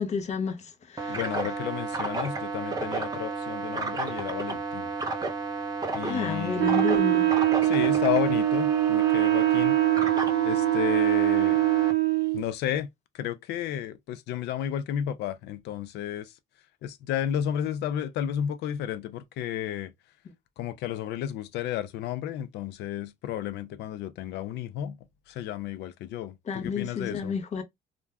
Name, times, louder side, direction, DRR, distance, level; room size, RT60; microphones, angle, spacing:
voice 1, 0.0-1.2 6.1-7.7 26.5-27.6, left 6 dB, 40° left, 0.8 m, -31 dB
sound 1, 1.0-11.9, right 4 dB, 20° right, 0.7 m, -32 dB
voice 2, 1.1-4.9 5.9-6.8 7.6-9.8 10.4-11.6 12.3-12.9 13.1-16.3 16.8-19.9 20.6-25.0 25.3-27.3, left 10 dB, 80° left, 0.5 m, -32 dB
Wind instrument woodwind instrument, 6.6-12.4, right 15 dB, 75° right, 0.6 m, -23 dB
2.5 x 2.2 x 3.3 m
cardioid pair, 110°, 17 cm